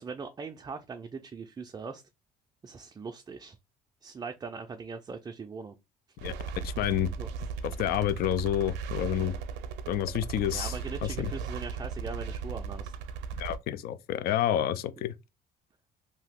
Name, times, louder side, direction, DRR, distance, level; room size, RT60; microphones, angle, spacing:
voice 1, 0.0-2.0 2.6-3.6 4.0-5.7 6.3-6.4 7.2-7.3 10.5-12.9, right 5 dB, 20° right, 0.3 m, -40 dB
sound 1, 6.2-13.6, right 5 dB, 85° right, 0.5 m, -37 dB
voice 2, 6.6-7.1 7.8-9.3 9.9-10.7 11.0-11.3 13.4-15.1, left 11 dB, 65° left, 0.4 m, -29 dB
2.8 x 2.3 x 3.5 m
cardioid pair, 110°, 17 cm